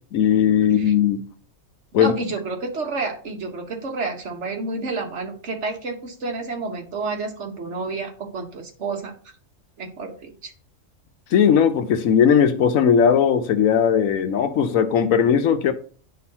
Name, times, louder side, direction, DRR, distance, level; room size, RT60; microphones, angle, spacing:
voice 1, 0.1-1.2 1.9-2.1 11.3-15.7, left 8 dB, 85° left, 1.1 m, -18 dB
voice 2, 1.9-9.1 9.8-10.5, right 3 dB, 60° right, 1.5 m, -30 dB
10.0 x 3.9 x 2.8 m
omnidirectional pair, 1.4 m